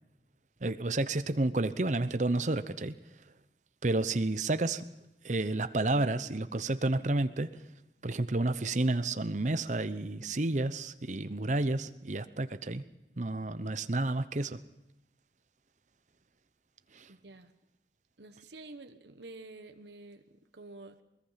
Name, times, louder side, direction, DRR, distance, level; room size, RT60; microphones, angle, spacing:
voice 1, 0.6-3.0 3.8-4.8 5.2-7.6 8.0-12.8 13.2-14.6 16.9-17.1, right 2 dB, 40° right, 12 dB, 0.8 m, -30 dB
voice 2, 17.1-17.5 18.2-21.0, right 2 dB, 75° right, 7 dB, 1.2 m, -49 dB
21.5 x 21.5 x 5.8 m, 0.88 s
head